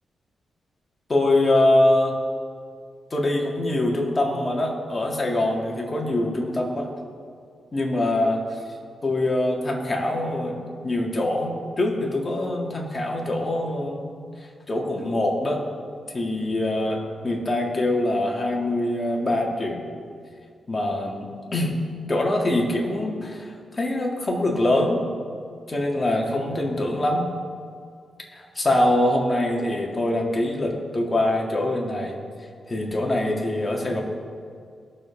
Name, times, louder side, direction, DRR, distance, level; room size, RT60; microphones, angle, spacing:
voice 1, 1.1-2.1 3.1-6.9 7.7-8.4 9.0-14.1 14.7-15.6 16.1-19.8 20.7-21.8 22.1-25.1 25.7-27.2 28.3-32.2 32.7-34.0, left 1 dB, 30° left, -1 dB, 2.1 m, -24 dB
20.5 x 7.1 x 3.6 m, 2.2 s
cardioid pair, 85°, 0 cm